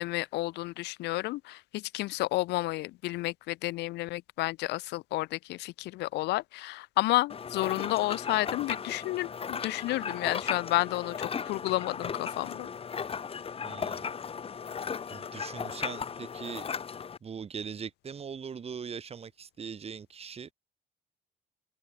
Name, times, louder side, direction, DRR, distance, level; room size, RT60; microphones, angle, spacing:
voice 1, 0.0-12.7, left 19 dB, 85° left, 5.1 m, -31 dB
sound 1, 7.3-17.2, left 6 dB, 35° left, 2.3 m, -36 dB
voice 2, 13.6-14.0 15.1-16.7 17.2-20.5, right 6 dB, 35° right, 4.9 m, -41 dB
cardioid pair, 110°, 17 cm